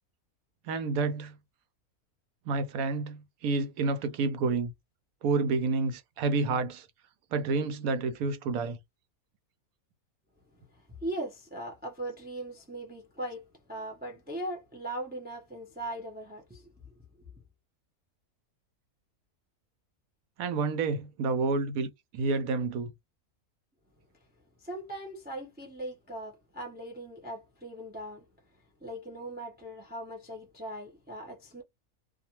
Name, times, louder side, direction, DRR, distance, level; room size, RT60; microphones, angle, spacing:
voice 1, 0.6-1.4 2.5-4.7 5.2-6.9 7.3-8.8 20.4-22.9, right 4 dB, 75° right, 1.0 m, -29 dB
voice 2, 10.6-16.9 24.6-28.3 28.8-31.6, right 1 dB, 10° right, 0.5 m, -39 dB
2.4 x 2.4 x 2.8 m
omnidirectional pair, 1.6 m